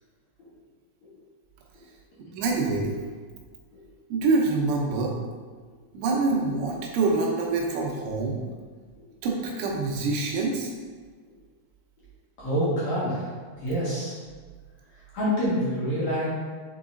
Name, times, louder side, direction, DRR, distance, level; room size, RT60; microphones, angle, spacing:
voice 1, 2.3-3.0 4.1-5.1 5.9-8.4 9.2-10.7, right 3 dB, 90° right, -1 dB, 3.4 m, -25 dB
voice 2, 12.4-13.3 13.6-14.1 15.1-16.3, equal, 50° left, -10 dB, 2.4 m, -26 dB
7.3 x 4.0 x 3.8 m, 1.5 s
omnidirectional pair, 5.4 m